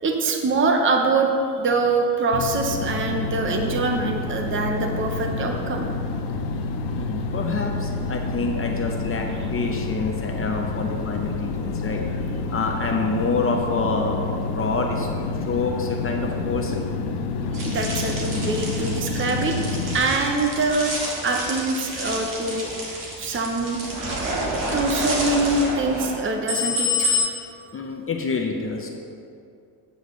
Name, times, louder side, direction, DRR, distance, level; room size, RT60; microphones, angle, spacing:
voice 1, 0.0-1.3 1.6-5.9 17.5-19.6 19.9-20.9 21.2-22.7 23.2-23.8 24.7-27.1, right 3 dB, 30° right, 3 dB, 0.7 m, -24 dB
sound 1, 2.3-20.0, left 3 dB, 85° left, 0.7 m, -28 dB
voice 2, 6.9-12.0 12.5-15.1 15.4-16.8 27.7-28.9, left 3 dB, 35° left, 2 dB, 0.6 m, -27 dB
sound 2, 17.5-27.2, left 1 dB, 50° right, 1.8 m, -29 dB
8.0 x 7.9 x 3.1 m, 2.4 s
cardioid pair, 125°, 40 cm